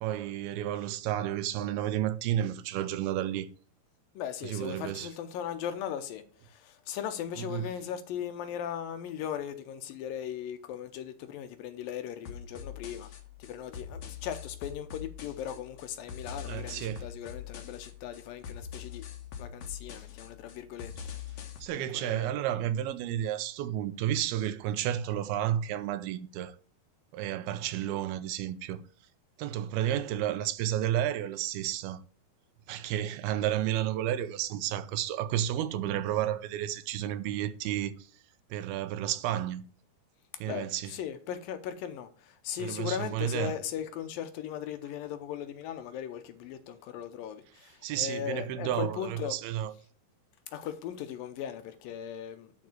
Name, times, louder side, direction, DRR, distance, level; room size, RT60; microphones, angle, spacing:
voice 1, 0.0-3.5 4.4-5.1 7.4-7.7 16.5-17.1 21.6-26.5 27.1-28.8 29.4-32.0 32.7-37.9 38.5-39.6 40.4-40.9 42.6-43.6 47.8-49.7, right 11 dB, 80° right, 2.6 m, -31 dB
voice 2, 4.2-13.1 13.4-19.1 19.4-20.9 21.7-22.3 40.5-49.4 50.5-52.7, left 9 dB, 75° left, 2.3 m, -38 dB
sound 1, 12.3-21.7, left 8 dB, 55° left, 2.3 m, -43 dB
11.0 x 4.7 x 7.6 m
omnidirectional pair, 4.5 m